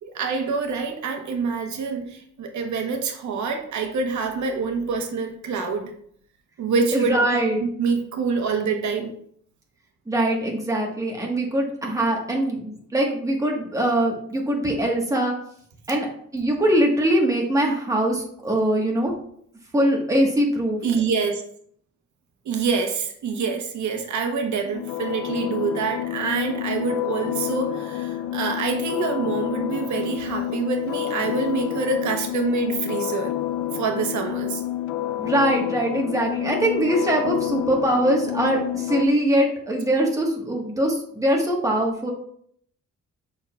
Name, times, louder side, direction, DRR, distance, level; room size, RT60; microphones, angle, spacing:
voice 1, 0.0-5.9 6.6-7.2 7.8-9.1 20.8-21.4 22.4-33.3 33.7-34.6, right 5 dB, 75° right, 4 dB, 1.0 m, -26 dB
voice 2, 6.9-7.6 10.1-15.3 15.9-16.1 16.3-19.1 19.7-20.8 35.2-42.1, right 1 dB, 10° right, -1 dB, 1.3 m, -22 dB
sound 1, 24.7-39.1, left 12 dB, 80° left, 0.5 m, -29 dB
7.1 x 6.2 x 2.3 m, 0.64 s
cardioid pair, 135°, 30 cm